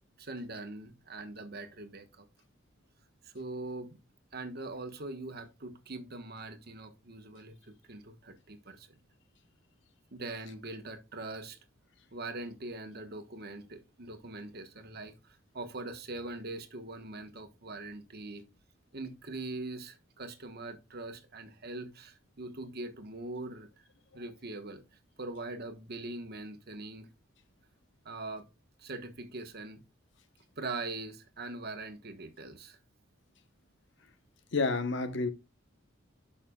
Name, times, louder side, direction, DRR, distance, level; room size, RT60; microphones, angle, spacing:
voice 1, 0.2-2.3 3.2-4.0 4.3-8.9 10.1-11.6 12.1-18.4 18.9-23.8 24.1-24.8 25.2-27.1 28.0-28.5 28.8-29.8 30.6-32.8, right 2 dB, 50° right, 1.2 m, -42 dB
voice 2, 34.5-35.3, left 3 dB, 65° left, 0.9 m, -29 dB
11.5 x 5.7 x 2.3 m
head